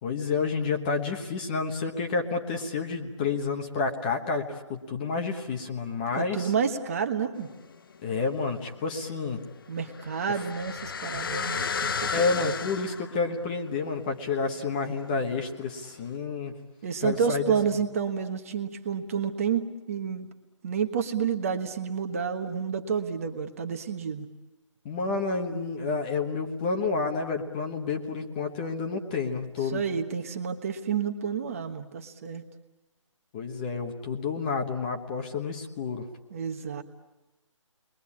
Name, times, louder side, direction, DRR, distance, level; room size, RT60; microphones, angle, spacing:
voice 1, 0.0-6.5 8.0-9.4 12.1-16.5 17.0-17.4 24.8-29.8 33.3-36.1, left 4 dB, 15° left, 4 dB, 1.2 m, -29 dB
voice 2, 6.1-7.5 9.7-12.5 16.8-20.3 20.6-24.3 29.6-32.4 36.3-36.8, right 6 dB, 25° right, 7 dB, 1.3 m, -30 dB
sound 1, 7.4-8.2 8.5-15.6 16.1-16.2, left 6 dB, 45° left, 0.9 m, -35 dB
29.5 x 22.0 x 8.6 m, 1.0 s
hypercardioid pair, 170°, 17 cm